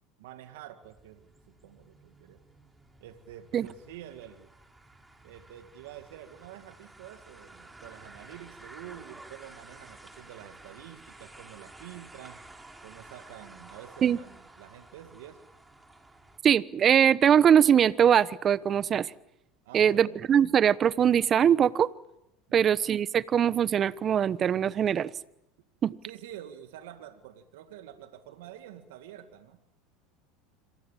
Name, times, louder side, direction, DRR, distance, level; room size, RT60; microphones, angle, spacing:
voice 1, 0.2-2.4 3.0-4.5 5.2-12.4 12.8-15.4 19.6-20.2 22.5-22.9 26.0-29.6, right 11 dB, 75° right, 8 dB, 2.1 m, -47 dB
sound 1, 0.8-16.4, right 2 dB, 10° right, 5.4 m, -52 dB
voice 2, 16.4-19.1 19.7-21.9 22.5-25.1 25.8-26.0, right 8 dB, 40° right, 18 dB, 1.1 m, -22 dB
27.0 x 26.5 x 7.4 m, 0.85 s
hypercardioid pair, 85°, 0 cm